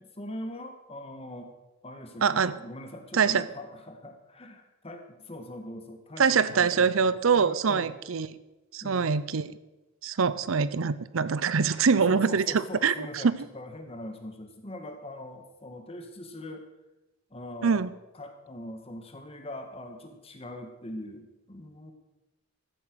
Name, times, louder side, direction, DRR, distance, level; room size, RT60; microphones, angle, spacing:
voice 1, 0.0-1.5 1.8-7.9 8.8-9.1 12.0-16.6 17.3-21.9, left 1 dB, 30° left, 4 dB, 1.8 m, -42 dB
voice 2, 2.2-2.6 3.1-3.4 6.2-8.3 8.7-9.6 10.0-13.4 17.6-17.9, right 5 dB, 90° right, 16 dB, 0.6 m, -24 dB
14.0 x 9.1 x 6.3 m, 1.0 s
head